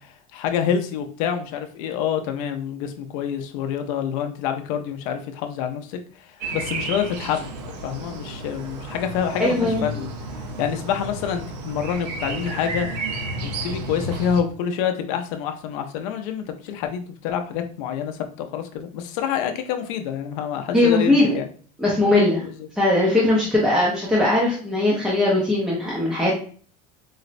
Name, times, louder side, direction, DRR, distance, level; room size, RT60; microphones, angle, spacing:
voice 1, 0.3-6.0 6.5-10.1 10.6-12.9 13.4-21.5 22.4-22.5, left 8 dB, 60° left, 6 dB, 0.5 m, -27 dB
sound 1, 6.4-14.4, right 2 dB, 80° right, 0.6 m, -32 dB
voice 2, 9.4-9.8 20.7-21.4 21.8-22.4 22.8-26.3, left 2 dB, ahead, -5 dB, 0.4 m, -19 dB
4.0 x 2.0 x 2.5 m, 0.43 s
supercardioid pair, 160°, 20 cm